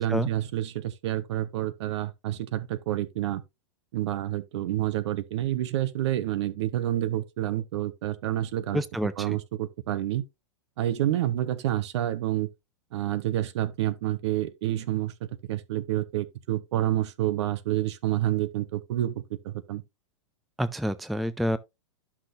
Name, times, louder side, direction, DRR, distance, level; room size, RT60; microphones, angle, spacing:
voice 1, 0.0-3.4 3.9-8.8 9.2-10.2 10.8-12.5 12.9-19.8, right 13 dB, 65° right, 0.9 m, -28 dB
voice 2, 8.7-9.4 20.6-21.6, equal, ahead, 0.3 m, -28 dB
11.5 x 5.9 x 2.5 m
hypercardioid pair, 120°, 16 cm